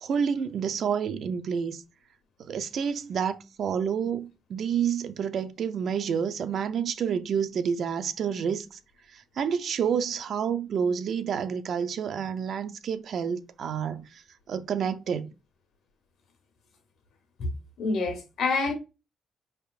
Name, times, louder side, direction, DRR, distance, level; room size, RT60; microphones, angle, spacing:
voice 1, 0.0-1.8 2.5-8.7 9.4-14.0 14.5-15.3, right 7 dB, 60° right, 0.5 m, -29 dB
voice 2, 17.8-18.7, left 3 dB, 65° left, 1.4 m, -27 dB
5.5 x 3.5 x 2.4 m
cardioid pair, 90°, 0 cm